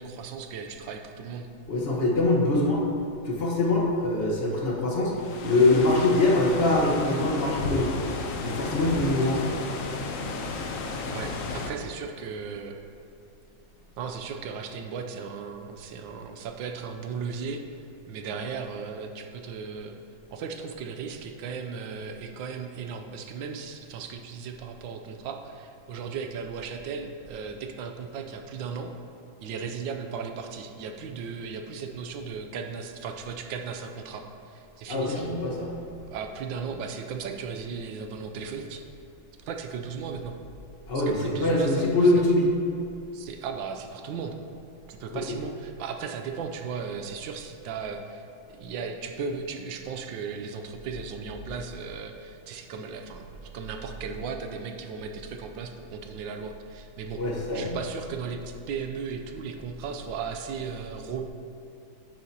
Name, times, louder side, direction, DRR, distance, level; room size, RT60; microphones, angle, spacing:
voice 1, 0.0-1.5 11.1-12.8 14.0-17.6 18.1-20.0 20.3-28.9 29.4-35.2 36.1-38.8 39.4-40.4 40.9-41.9 43.1-44.4 44.9-48.2 48.5-57.2 57.5-61.3, right 5 dB, 75° right, 5 dB, 1.4 m, -36 dB
voice 2, 1.7-2.9 3.2-5.1 5.4-7.9 8.4-9.5 34.9-35.7 40.9-42.5 45.1-45.2 57.2-57.8, left 2 dB, 35° left, -3 dB, 1.3 m, -23 dB
sound 1, 5.1-11.7, left 3 dB, 60° left, 0.8 m, -33 dB
10.0 x 7.6 x 2.9 m, 2.7 s
omnidirectional pair, 2.1 m